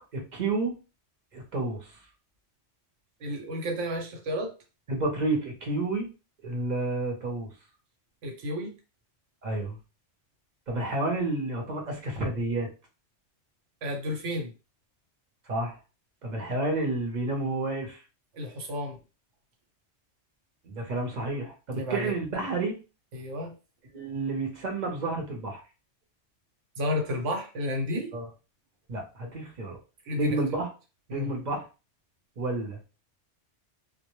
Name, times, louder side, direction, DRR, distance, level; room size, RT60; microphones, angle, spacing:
voice 1, 0.1-0.7 1.3-1.8 4.9-6.1 6.4-7.5 9.4-9.8 10.7-12.7 15.5-15.8 16.2-18.0 20.7-22.8 23.9-25.6 28.1-28.3 28.9-29.8 30.2-30.7 31.1-31.6 32.4-32.8, right 2 dB, 45° right, 1 dB, 0.7 m, -30 dB
voice 2, 3.2-4.5 8.2-8.7 13.8-14.5 18.3-19.0 21.7-22.1 23.1-23.5 26.8-28.2 30.1-30.4 31.1-31.3, left 1 dB, 80° right, 2 dB, 1.1 m, -31 dB
2.2 x 2.1 x 2.9 m, 0.31 s
omnidirectional pair, 1.2 m